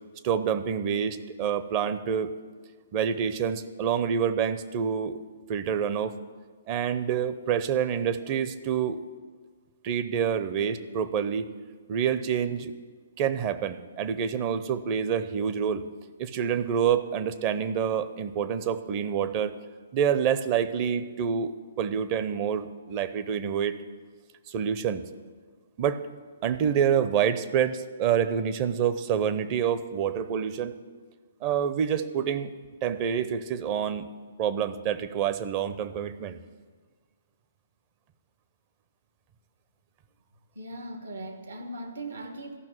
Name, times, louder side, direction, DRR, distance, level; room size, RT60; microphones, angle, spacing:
voice 1, 0.2-2.3 2.9-5.2 5.5-6.2 6.7-9.0 9.8-11.5 11.9-12.7 13.2-15.8 16.2-19.5 19.9-23.7 24.5-25.0 25.8-26.0 26.4-30.7 31.4-32.5 32.8-34.1 34.4-36.4, right 8 dB, 35° right, 12 dB, 0.7 m, -27 dB
voice 2, 40.5-42.6, right 1 dB, 75° right, 5 dB, 1.4 m, -39 dB
14.0 x 6.0 x 8.9 m, 1.5 s
hypercardioid pair, 130°, 0 cm